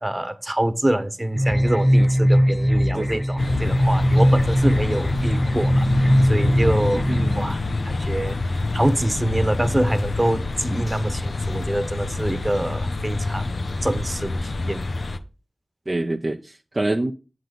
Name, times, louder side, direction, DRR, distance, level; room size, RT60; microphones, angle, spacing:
voice 1, 0.0-7.0 7.4-14.8, right 1 dB, 25° right, 1.1 m, -25 dB
sound 1, 1.4-7.4, equal, ahead, 0.8 m, -20 dB
sound 2, 3.4-15.2, left 3 dB, 75° left, 0.7 m, -26 dB
voice 2, 6.9-7.3 15.9-17.1, right 2 dB, 40° right, 0.6 m, -26 dB
7.9 x 3.9 x 6.6 m
cardioid pair, 40°, 0 cm